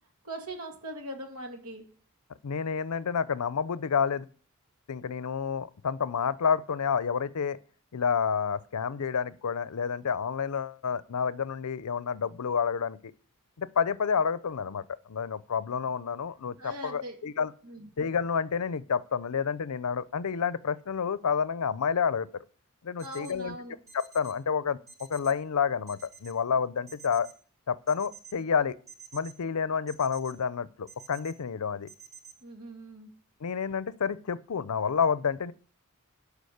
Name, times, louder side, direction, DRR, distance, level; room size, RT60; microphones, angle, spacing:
voice 1, 0.2-1.9 16.6-17.2 17.6-17.9 23.0-23.8 31.5-31.7 32.4-33.1, right 1 dB, 90° right, 2.5 m, -41 dB
voice 2, 2.4-4.3 4.9-7.6 7.9-13.1 13.6-17.5 18.0-22.3 22.8-23.5 23.9-27.3 27.7-28.8 29.1-31.9 33.4-35.5, left 6 dB, 90° left, 0.5 m, -29 dB
sound 1, 23.0-23.3 23.9-24.3 24.9-25.3 25.9-26.3 26.9-27.3 27.9-28.3 28.9-29.3 29.9-30.3 30.9-31.3 31.9-32.3, right 6 dB, 15° right, 5.1 m, -48 dB
12.0 x 5.0 x 6.5 m
head